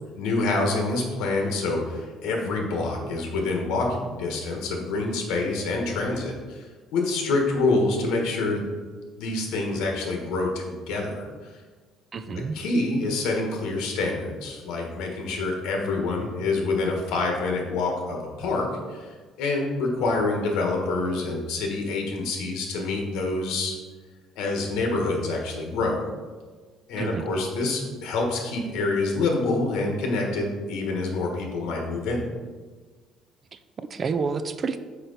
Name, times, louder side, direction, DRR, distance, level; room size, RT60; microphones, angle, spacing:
voice 1, 0.2-8.7 9.2-11.5 12.3-19.1 19.4-23.8 24.4-26.1 26.9-32.2, left 3 dB, 80° left, 1 dB, 1.4 m, -27 dB
voice 2, 12.1-12.5 27.0-27.3 33.5-34.8, right 5 dB, 30° right, 11 dB, 0.3 m, -29 dB
5.8 x 5.2 x 4.1 m, 1.4 s
cardioid pair, 150°, 0 cm